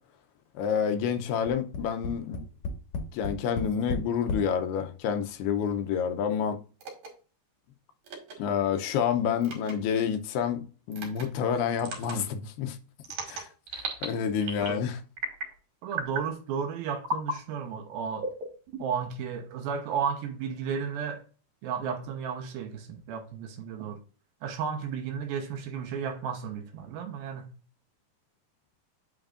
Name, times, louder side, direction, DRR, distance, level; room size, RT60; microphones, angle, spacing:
voice 1, 0.6-2.4 3.1-6.6 8.4-12.8 13.3-13.5 14.0-15.0, left 7 dB, 80° left, 2.6 m, -28 dB
Tap, 1.5-4.5 5.3-5.4 5.7-5.8, left 3 dB, 60° left, 2.1 m, -34 dB
sound 1, 6.8-7.1 8.0-8.3 9.4-9.7 10.9-11.2 11.8-12.2 13.0-14.1 14.4-14.8 15.2-15.5 15.9-16.3 17.0-17.4 18.2-19.1, right 1 dB, 55° right, 3.1 m, -35 dB
voice 2, 15.8-18.3 18.8-21.2 21.6-24.0 24.4-27.5, right 7 dB, 75° right, 2.5 m, -33 dB
8.9 x 6.6 x 2.5 m
omnidirectional pair, 4.7 m